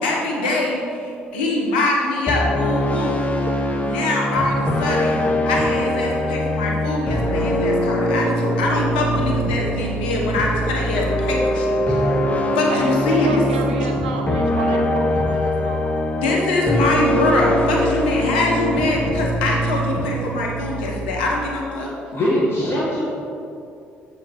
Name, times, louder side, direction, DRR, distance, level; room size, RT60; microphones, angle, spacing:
voice 1, 0.0-3.2 3.8-12.1 12.5-13.4 16.2-21.9, left 2 dB, 80° left, -1 dB, 1.1 m, -23 dB
sound 1, 2.3-21.4, equal, 25° left, 0.9 m, -22 dB
voice 2, 12.7-15.9 22.0-22.1, right 3 dB, 90° right, 3 dB, 0.6 m, -31 dB
voice 3, 22.1-23.0, equal, 45° left, -7 dB, 1.7 m, -21 dB
7.2 x 4.8 x 4.7 m, 2.6 s
hypercardioid pair, 50°, 5 cm